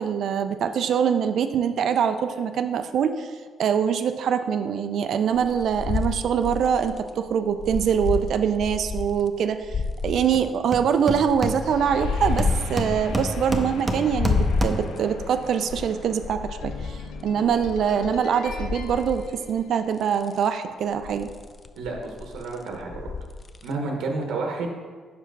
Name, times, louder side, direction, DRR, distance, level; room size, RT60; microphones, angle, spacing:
voice 1, 0.0-3.3 3.6-21.3, right 7 dB, 70° right, 8 dB, 0.3 m, -24 dB
sound 1, 5.3-9.3 9.6-10.4 11.0-13.8 14.1-19.6 20.0-20.5 20.9-23.7, left 4 dB, 40° left, 0.4 m, -30 dB
Hammer, 10.3-10.4 10.7-12.0 12.4-15.0, right 1 dB, 20° right, 0.5 m, -29 dB
sound 2, 11.6-20.2, left 4 dB, 90° left, 0.5 m, -41 dB
voice 2, 21.8-23.1 23.6-24.7, right 3 dB, 85° right, 1 dB, 0.9 m, -30 dB
5.5 x 4.7 x 4.5 m, 1.5 s
cardioid pair, 90°, 0 cm